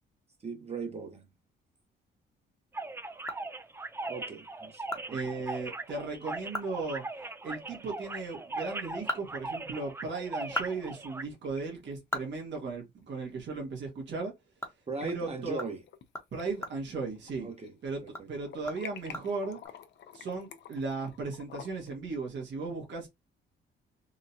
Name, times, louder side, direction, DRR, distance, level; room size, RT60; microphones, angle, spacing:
voice 1, 0.4-1.3 4.1-4.8 5.1-5.3 14.9-15.8 17.4-17.8 18.0-18.3, right 3 dB, 30° right, 1.0 m, -38 dB
sound 1, 2.7-11.2, right 2 dB, 10° right, 0.4 m, -39 dB
sound 2, 3.0-4.0 4.4-4.5 4.9-5.1 5.4-5.5 5.9-6.0 6.4-6.8 7.1-7.2 8.7-10.0 10.3-13.3 13.6-13.7 14.1-17.7 18.0-19.7, left 1 dB, 15° left, 1.0 m, -41 dB
voice 2, 5.1-7.0 7.4-14.3 15.0-15.6 16.3-17.5 17.8-18.0 18.3-19.6 20.1-23.1, right 3 dB, 65° right, 1.5 m, -36 dB
sound 3, 10.9-11.6 11.9-12.0 13.5-13.6 14.7-15.1 15.6-16.1 16.4-17.7 18.0-22.0, left 8 dB, 60° left, 0.6 m, -49 dB
3.7 x 2.2 x 2.7 m
cardioid pair, 90°, 20 cm